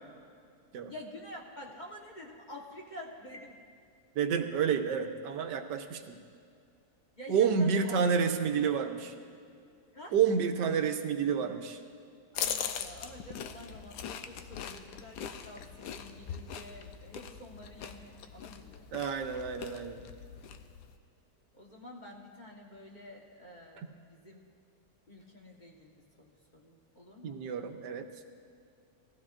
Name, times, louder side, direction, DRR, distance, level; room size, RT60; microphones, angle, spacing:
voice 1, 0.9-3.6 7.2-8.0 8.4-8.5 9.9-10.2 12.3-18.9 21.5-24.5 25.1-27.4, left 1 dB, 30° left, -1 dB, 1.1 m, -48 dB
voice 2, 4.2-6.2 7.3-9.1 10.1-11.8 18.9-20.0 27.2-28.1, right 6 dB, 85° right, 7 dB, 1.4 m, -29 dB
sound 1, 12.3-21.0, left 8 dB, 80° left, 1.2 m, -41 dB
18.5 x 14.5 x 2.5 m, 2.4 s
omnidirectional pair, 1.8 m